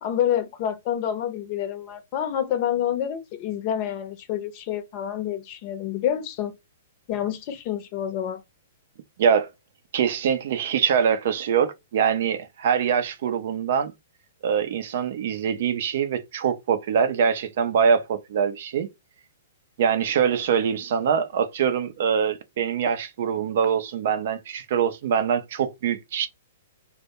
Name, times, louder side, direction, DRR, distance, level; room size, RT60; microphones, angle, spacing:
voice 1, 0.0-6.5 7.1-8.4, left 10 dB, 40° left, 0.6 m, -28 dB
voice 2, 9.9-13.9 14.4-18.9 19.8-26.3, right 7 dB, 60° right, 0.4 m, -23 dB
2.1 x 2.1 x 2.8 m
hypercardioid pair, 120°, 0 cm